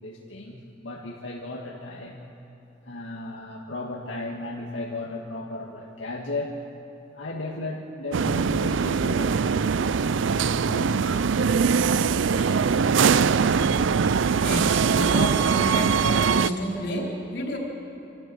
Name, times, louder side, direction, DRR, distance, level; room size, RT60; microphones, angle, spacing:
voice 1, 0.0-2.2 2.8-6.5 7.1-9.7 10.1-11.5 12.1-12.7 14.8-14.9, left 2 dB, 90° left, -2 dB, 1.9 m, -35 dB
sound 1, 8.1-16.5, right 6 dB, 85° right, 0.5 m, -22 dB
voice 2, 14.4-17.6, equal, 65° left, -2 dB, 3.9 m, -30 dB
26.5 x 13.5 x 8.6 m, 2.9 s
head